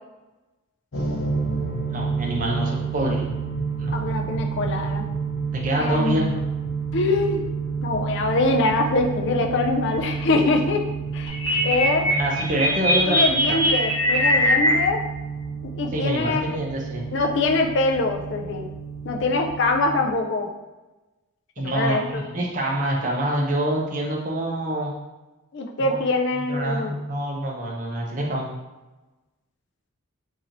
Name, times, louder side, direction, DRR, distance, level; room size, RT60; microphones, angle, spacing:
sound 1, 0.9-19.9, right 5 dB, 75° left, 0.8 m, -30 dB
voice 1, 1.9-3.2 3.8-3.9 5.5-6.4 12.1-13.6 15.9-17.1 21.6-24.9 25.8-26.0 26.3-28.6, right 1 dB, 35° right, -2 dB, 0.6 m, -26 dB
voice 2, 3.9-5.1 5.8-6.3 6.9-7.4 7.8-10.8 11.1-11.4 11.6-12.1 13.1-15.0 15.6-16.4 17.1-18.7 19.0-20.5 21.6-22.2 25.5-26.9, left 2 dB, 55° left, 3 dB, 0.4 m, -23 dB
sound 2, 11.3-14.7, equal, 15° left, 1.5 m, -21 dB
3.0 x 2.7 x 3.8 m, 1.1 s
head